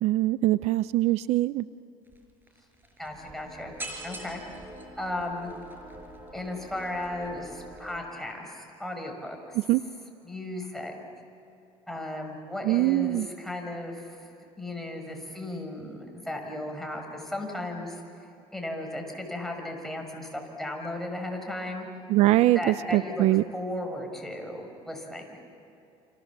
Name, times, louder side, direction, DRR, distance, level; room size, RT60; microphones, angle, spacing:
voice 1, 0.0-1.7 9.7-9.8 12.6-13.3 22.1-23.4, right 16 dB, 65° right, 16 dB, 0.6 m, -23 dB
sound 1, 2.1-2.2 2.5-8.0, right 1 dB, 20° right, 5.5 m, -44 dB
voice 2, 3.0-3.7 4.0-4.4 5.0-5.5 6.3-9.6 10.2-10.9 11.9-14.3 14.6-18.0 18.5-21.9 22.5-23.2 23.5-25.4, left 1 dB, 5° left, 2 dB, 6.0 m, -35 dB
29.5 x 27.0 x 7.4 m, 2.8 s
supercardioid pair, 100°, 12 cm